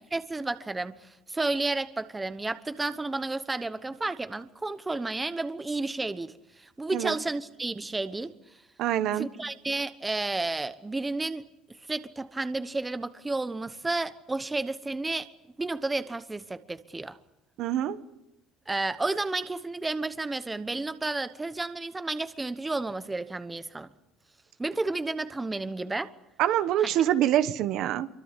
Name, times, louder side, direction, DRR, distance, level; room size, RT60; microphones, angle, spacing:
voice 1, 0.1-8.3 9.2-11.5 11.9-15.3 15.6-17.2 18.7-23.9 24.6-26.1 26.8-26.9, right 2 dB, 10° right, 1.0 m, -31 dB
voice 2, 8.8-9.3 17.6-18.0 26.4-28.1, right 11 dB, 60° right, 1.3 m, -25 dB
25.0 x 24.0 x 8.3 m
cardioid pair, 130°, 0 cm